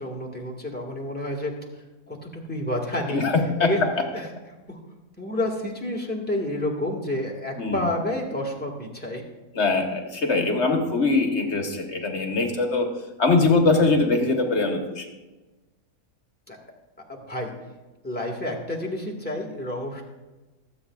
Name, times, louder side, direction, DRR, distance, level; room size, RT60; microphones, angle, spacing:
voice 1, 0.0-1.5 2.1-3.3 3.6-3.8 4.1-4.3 4.7-4.8 5.2-9.2 13.3-13.6 16.5-16.6 17.1-17.5 18.0-20.0, left 1 dB, 5° left, -1 dB, 1.6 m, -29 dB
voice 2, 3.1-3.9 7.6-7.9 9.5-12.9 13.2-15.1, left 3 dB, 50° left, 3 dB, 1.4 m, -22 dB
23.5 x 8.1 x 2.4 m, 1.2 s
omnidirectional pair, 1.6 m